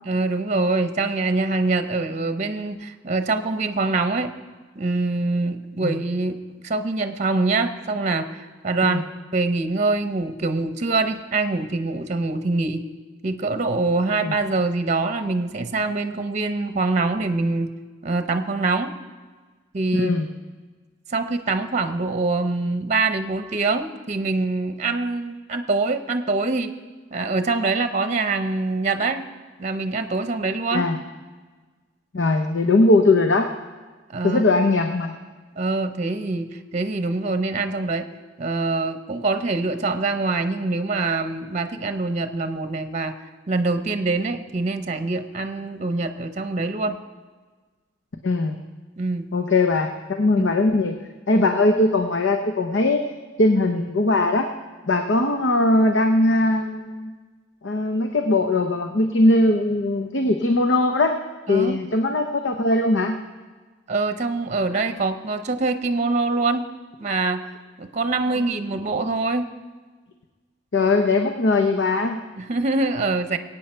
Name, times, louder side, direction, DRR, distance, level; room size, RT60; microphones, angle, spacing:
voice 1, 0.0-4.3 4.8-6.4 6.6-12.8 13.2-17.7 18.0-18.9 19.7-20.1 21.1-26.7 27.1-29.2 29.6-30.8 34.1-34.4 35.6-38.1 38.4-43.1 43.5-47.0 49.0-49.2 50.4-50.5 51.3-51.4 61.5-61.8 63.9-66.6 67.0-67.4 67.8-69.4 72.4-73.4, right 3 dB, 40° right, 8 dB, 0.7 m, -24 dB
voice 2, 19.9-20.3 30.7-31.0 32.1-33.5 34.2-35.1 48.2-48.6 49.3-50.9 51.3-53.0 53.4-54.5 54.9-57.1 57.6-61.2 61.5-63.2 70.7-72.2, left 2 dB, 85° left, 5 dB, 0.8 m, -20 dB
22.5 x 9.0 x 4.4 m, 1.4 s
head